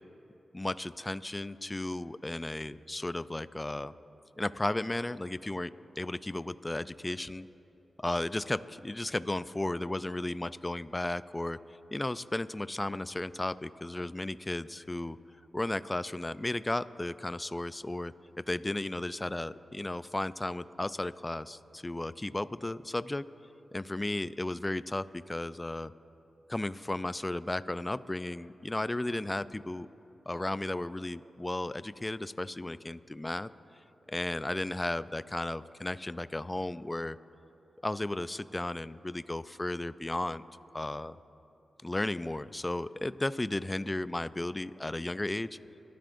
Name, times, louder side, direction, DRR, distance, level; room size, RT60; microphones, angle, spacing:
voice 1, 0.5-3.9 4.4-7.5 8.0-11.6 11.9-15.2 15.5-18.1 18.5-23.2 23.7-25.9 26.5-29.9 30.3-33.5 34.1-37.2 37.8-40.4 40.7-41.2 41.8-45.5, left 1 dB, 20° left, 15 dB, 0.4 m, -34 dB
27.0 x 12.5 x 2.6 m, 2.9 s
cardioid pair, 50°, 0 cm